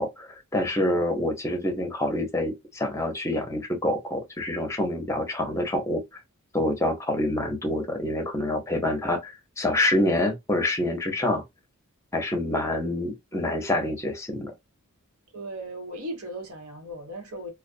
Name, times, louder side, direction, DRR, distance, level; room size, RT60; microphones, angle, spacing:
voice 1, 0.0-6.0 6.5-11.4 12.1-14.5, left 1 dB, 15° left, 0.7 m, -27 dB
voice 2, 15.3-17.5, right 1 dB, 80° right, 1.0 m, -37 dB
2.4 x 2.3 x 2.4 m
head